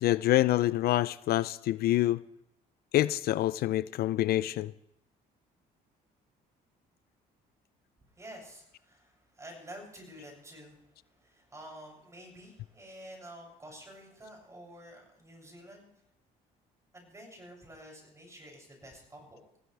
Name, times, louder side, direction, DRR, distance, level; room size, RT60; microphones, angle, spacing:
voice 1, 0.0-2.2 2.9-4.7, left 14 dB, 65° left, 0.5 m, -26 dB
voice 2, 8.2-15.9 16.9-19.4, equal, 15° right, 7.2 m, -49 dB
21.5 x 16.0 x 3.4 m
cardioid pair, 110°, 17 cm